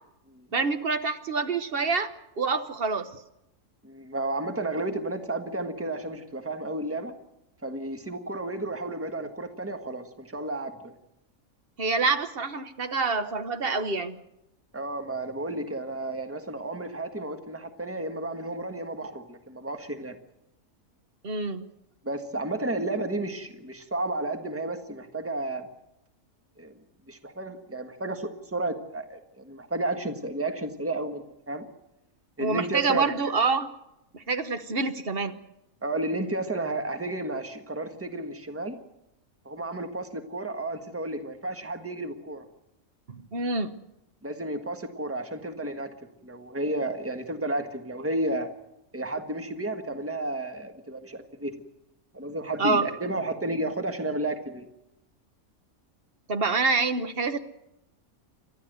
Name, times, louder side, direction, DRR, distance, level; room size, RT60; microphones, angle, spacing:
voice 1, 0.5-3.1 11.8-14.2 21.2-21.7 32.4-33.7 34.1-35.4 43.1-43.8 52.6-52.9 56.3-57.4, right 4 dB, 45° right, 10 dB, 1.2 m, -27 dB
voice 2, 3.8-7.1 7.6-10.9 14.7-20.2 22.0-25.7 26.6-26.7 27.1-31.7 32.4-33.1 35.8-38.7 39.4-42.5 44.2-45.9 46.2-48.5 48.9-51.5 52.1-54.7, right 2 dB, 10° right, 6 dB, 1.4 m, -32 dB
29.0 x 13.0 x 7.9 m, 0.89 s
omnidirectional pair, 1.5 m